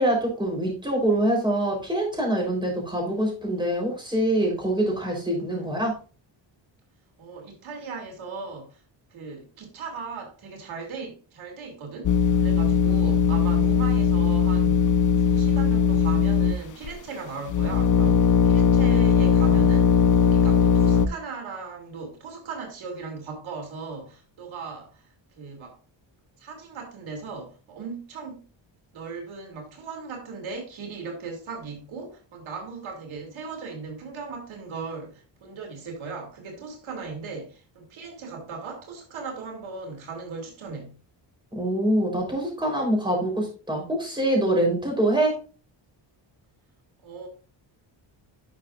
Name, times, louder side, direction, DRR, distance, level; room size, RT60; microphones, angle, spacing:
voice 1, 0.0-6.0 41.5-45.4, right 1 dB, 10° right, -1 dB, 4.0 m, -24 dB
voice 2, 7.2-8.8 9.1-14.9 15.2-25.8 26.4-28.4 28.9-40.9 47.0-47.3, right 4 dB, 85° right, 2 dB, 2.8 m, -38 dB
sound 1, 12.0-16.9 17.5-21.1, left 6 dB, 40° left, 0.6 m, -19 dB
11.0 x 6.5 x 2.5 m, 0.35 s
cardioid pair, 120°, 46 cm